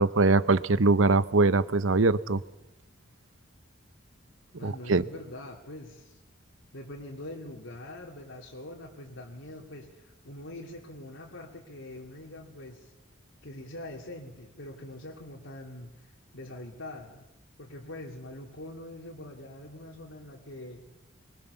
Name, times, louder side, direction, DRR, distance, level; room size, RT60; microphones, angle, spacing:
voice 1, 0.0-2.4 4.6-5.0, right 3 dB, 80° right, 0.9 m, -22 dB
voice 2, 4.5-6.2 6.7-12.9 13.4-17.3 17.6-20.8, left 1 dB, 80° left, 3.0 m, -43 dB
24.0 x 22.5 x 7.0 m
head